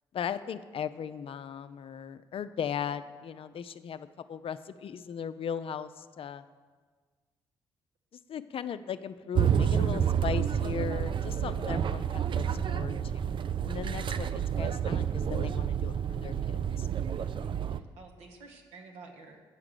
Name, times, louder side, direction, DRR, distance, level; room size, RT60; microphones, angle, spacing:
voice 1, 0.1-6.4 8.3-12.9 13.6-14.3 14.6-15.9 16.2-16.9, left 7 dB, 55° left, 12 dB, 0.5 m, -37 dB
sound 1, 9.4-17.8, right 8 dB, 45° right, 0.4 m, -29 dB
voice 2, 9.5-9.9 16.8-19.4, right 4 dB, 75° right, 2 dB, 1.1 m, -52 dB
8.2 x 5.9 x 6.7 m, 1.5 s
hypercardioid pair, 45°, 11 cm